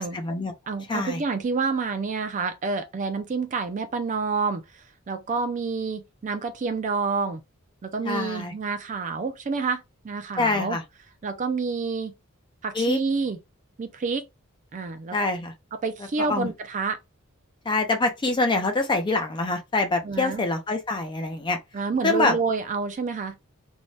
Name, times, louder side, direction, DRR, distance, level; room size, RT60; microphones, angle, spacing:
voice 1, 0.1-0.5 0.9-1.2 8.0-8.5 10.4-10.8 12.7-13.0 15.1-15.5 16.2-16.5 17.6-21.6 22.0-22.4, left 2 dB, 20° left, 0.5 m, -25 dB
voice 2, 0.7-7.4 7.8-10.8 11.2-12.1 12.6-13.4 13.8-14.2 14.7-15.1 15.8-17.0 20.0-20.4 21.7-23.4, right 4 dB, 35° right, 0.4 m, -28 dB
2.7 x 2.2 x 3.1 m
head